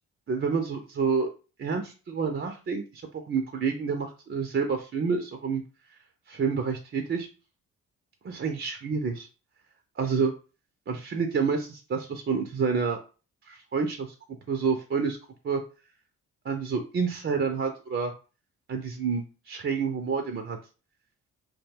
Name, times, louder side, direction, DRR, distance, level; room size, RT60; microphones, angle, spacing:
voice 1, 0.3-1.3 1.6-5.6 6.3-7.3 8.2-9.3 10.0-10.3 10.9-13.0 13.5-14.1 14.5-15.2 15.4-15.6 16.4-18.1 18.7-20.6, right 5 dB, 30° right, 4 dB, 0.6 m, -28 dB
2.2 x 2.2 x 3.4 m, 0.34 s
hypercardioid pair, 45°, 39 cm